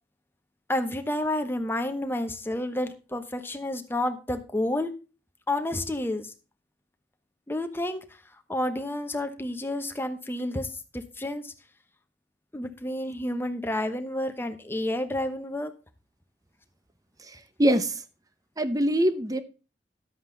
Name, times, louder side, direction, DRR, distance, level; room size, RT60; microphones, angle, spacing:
voice 1, 0.7-4.9 5.5-6.3 7.5-8.0 8.5-11.5 12.5-15.7, left 1 dB, 10° left, 7 dB, 1.0 m, -30 dB
voice 2, 17.2-18.0 18.6-19.4, right 1 dB, 20° right, 12 dB, 0.8 m, -24 dB
11.5 x 7.9 x 3.9 m, 0.32 s
head